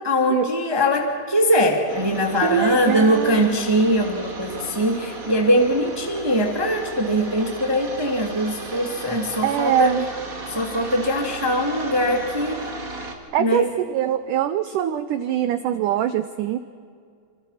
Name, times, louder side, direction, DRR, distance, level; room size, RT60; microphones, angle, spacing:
voice 1, 0.0-9.9 10.5-12.6 13.4-13.7, equal, 10° right, 2 dB, 1.3 m, -21 dB
sound 1, 1.9-13.1, right 2 dB, 30° right, 2.0 m, -35 dB
voice 2, 2.4-3.7 9.4-10.1 13.3-16.6, right 10 dB, 85° right, 11 dB, 1.8 m, -23 dB
27.0 x 27.0 x 5.8 m, 2.2 s
omnidirectional pair, 4.6 m